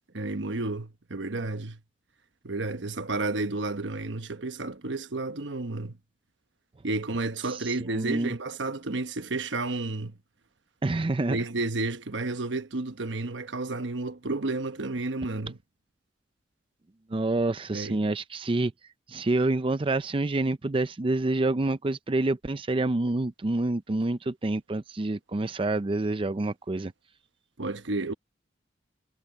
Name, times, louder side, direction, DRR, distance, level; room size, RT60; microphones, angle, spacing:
voice 1, 0.1-1.8 2.4-5.9 6.8-10.2 11.3-15.6 17.7-18.0 27.6-28.1, right 2 dB, 80° right, 1.1 m, -31 dB
voice 2, 7.5-8.3 10.8-11.4 17.1-18.7 19.1-26.9, right 2 dB, 30° right, 0.5 m, -27 dB
head